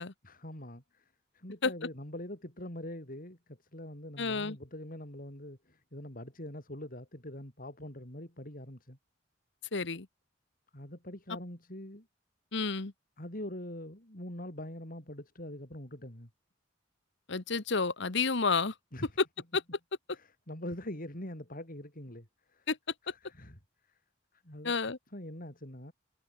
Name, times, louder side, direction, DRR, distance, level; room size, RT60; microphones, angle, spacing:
voice 1, 0.2-9.0 10.7-12.1 13.2-16.3 18.9-19.1 20.1-22.7 23.0-23.6 24.4-24.7 25.1-25.9, left 1 dB, 50° left, 7.9 m, -44 dB
voice 2, 4.2-4.6 9.7-10.1 12.5-12.9 17.3-18.7 19.5-19.6 22.7-22.8 24.6-25.0, left 4 dB, 70° left, 1.4 m, -30 dB
head